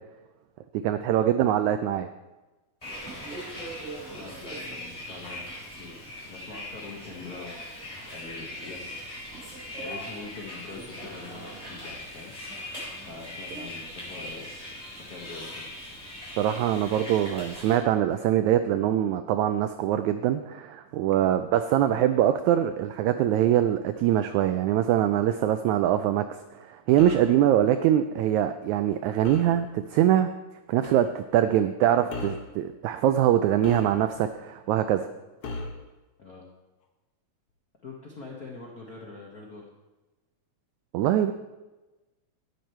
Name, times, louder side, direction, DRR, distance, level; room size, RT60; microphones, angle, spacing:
voice 1, 0.8-2.1 16.4-26.2 26.6-30.3 30.7-35.1 40.9-41.3, right 11 dB, 90° right, 9 dB, 1.6 m, -23 dB
Bus, 2.8-17.8, left 1 dB, 10° left, 4.4 m, -40 dB
voice 2, 4.1-6.0 6.3-7.6 8.1-9.1 9.7-12.3 13.1-14.5 14.9-15.6 21.1-21.3 31.4-31.5 36.2-36.4 37.8-39.6, left 4 dB, 80° left, -1 dB, 0.8 m, -44 dB
sound 1, 27.0-27.4 29.2-29.6 30.8-31.1 32.1-32.5 33.6-34.3 35.4-35.9, left 3 dB, 55° left, 1.6 m, -37 dB
12.0 x 9.4 x 4.4 m, 1.1 s
omnidirectional pair, 3.9 m